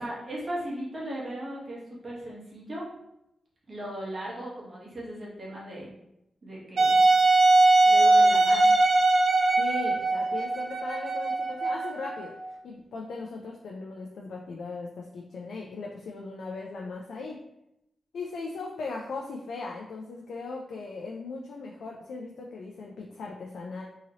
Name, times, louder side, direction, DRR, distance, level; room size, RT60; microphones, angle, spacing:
voice 1, 0.0-2.9 3.7-6.0 6.4-7.0 7.9-8.8, right 1 dB, 35° right, -5 dB, 1.0 m, -37 dB
Wind instrument woodwind instrument, 6.8-12.4, right 2 dB, 60° right, 0.5 m, -21 dB
voice 2, 9.6-12.3 12.6-17.4 18.1-23.8, left 3 dB, 85° left, -1 dB, 0.3 m, -38 dB
2.8 x 2.7 x 2.8 m, 0.84 s
wide cardioid pair, 160°, 0 cm